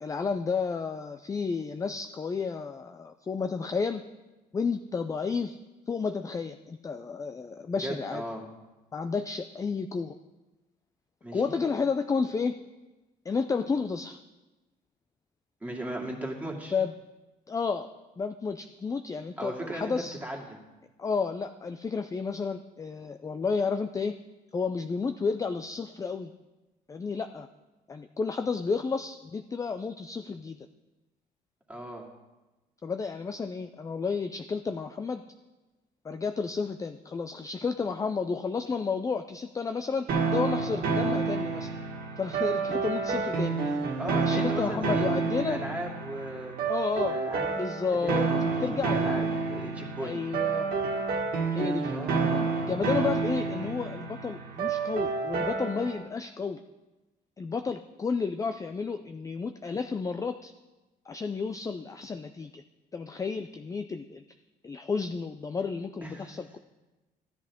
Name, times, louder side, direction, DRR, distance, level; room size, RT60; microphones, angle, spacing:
voice 1, 0.0-4.0 4.5-5.6 5.9-8.2 8.9-10.1 11.3-12.5 13.3-14.2 16.7-16.9 17.5-17.9 18.2-20.2 21.0-24.1 24.5-26.3 26.9-27.5 27.9-30.7 32.8-35.2 36.0-41.7 42.2-43.8 44.0-45.6 46.7-47.2 47.6-49.1 50.0-50.7 51.5-52.0 52.7-56.6 57.4-60.5 61.1-62.6 62.9-64.2 64.6-66.6, left 5 dB, 20° left, 8 dB, 0.4 m, -31 dB
voice 2, 7.8-8.4 11.2-11.5 15.6-16.7 19.4-19.9 20.2-20.6 31.7-32.1 44.0-45.1 45.4-46.6 47.0-47.5 47.9-50.1 51.9-52.5 66.0-66.6, right 1 dB, 10° right, -2 dB, 2.4 m, -37 dB
sound 1, 40.1-56.0, right 4 dB, 60° right, 1.8 m, -29 dB
14.0 x 10.0 x 3.6 m, 1.1 s
cardioid pair, 110°, 17 cm